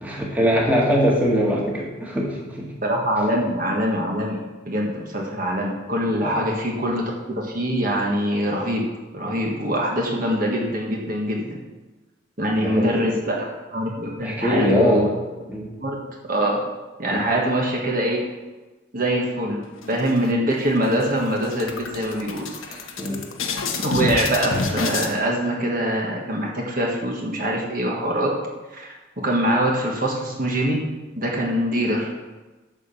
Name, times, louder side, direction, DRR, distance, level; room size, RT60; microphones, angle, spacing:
voice 1, 0.0-2.7 6.2-6.4 12.6-13.2 14.2-15.1 15.5-15.7 17.1-17.3 22.7-23.2, equal, 10° right, -3 dB, 1.8 m, -22 dB
voice 2, 2.8-4.4 4.6-8.8 9.1-11.6 12.4-13.5 13.7-15.1 15.8-16.0 16.3-16.6 17.0-18.2 18.9-22.4 23.8-28.3 28.7-28.9 29.2-30.8 31.2-32.1, equal, 45° right, -1 dB, 1.5 m, -23 dB
sound 1, 19.8-20.5 20.9-21.0 21.3-25.1, left 3 dB, 80° left, 1.2 m, -28 dB
13.0 x 4.5 x 7.1 m, 1.2 s
head